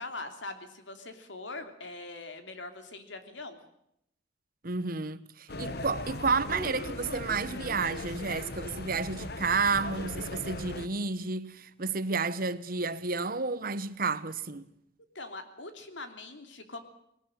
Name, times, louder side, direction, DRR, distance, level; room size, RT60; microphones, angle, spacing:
voice 1, 0.0-3.6 15.1-16.8, left 3 dB, 85° left, 3.1 m, -42 dB
voice 2, 4.6-14.6, right 4 dB, 50° right, 1.1 m, -31 dB
sound 1, 5.5-10.9, left 2 dB, 60° left, 1.4 m, -38 dB
20.0 x 19.5 x 9.2 m
head